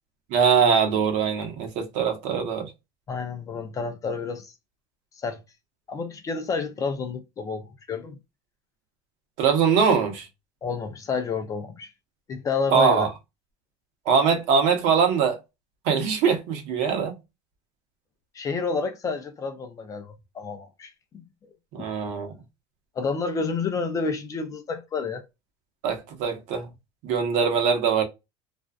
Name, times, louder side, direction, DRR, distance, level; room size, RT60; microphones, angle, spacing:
voice 1, 0.3-2.7 9.4-10.3 12.7-13.1 14.1-15.4 15.8-17.2 21.7-22.3 25.8-26.7 27.0-28.0, right 6 dB, 60° right, 0.9 m, -22 dB
voice 2, 3.1-4.5 5.2-5.4 5.9-8.2 10.6-11.9 12.3-13.1 18.3-21.3 21.8-21.9 23.0-25.2, left 4 dB, 25° left, 0.4 m, -30 dB
2.5 x 2.2 x 2.3 m
cardioid pair, 145°, 13 cm